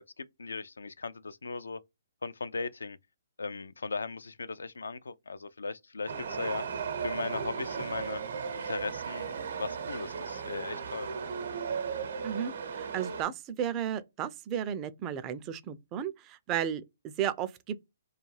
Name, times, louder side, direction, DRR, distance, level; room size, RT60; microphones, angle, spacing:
voice 1, 0.0-1.8 2.2-3.0 3.4-6.6 7.0-8.2 8.6-11.1, left 4 dB, 90° left, 0.3 m, -38 dB
Chatter / Subway metro underground, 6.1-13.2, right 6 dB, 70° right, 0.7 m, -36 dB
voice 2, 12.2-17.8, right 9 dB, 25° right, 0.3 m, -34 dB
2.3 x 2.2 x 3.1 m
hypercardioid pair, 145°, 0 cm